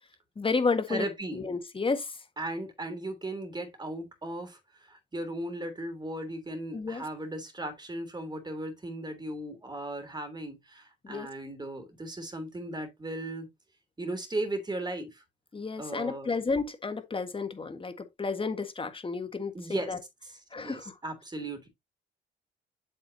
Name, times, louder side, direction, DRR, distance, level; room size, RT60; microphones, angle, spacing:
voice 1, 0.4-1.1 1.3-2.2 6.7-7.0 11.0-11.3 15.5-20.0 20.5-21.0, left 4 dB, 25° left, 1.7 m, -31 dB
voice 2, 0.9-1.5 2.4-13.5 14.0-15.2 15.8-16.3 19.5-19.9 20.2-21.7, right 1 dB, 20° right, 3.3 m, -37 dB
7.8 x 7.4 x 2.8 m
cardioid pair, 90°, 20 cm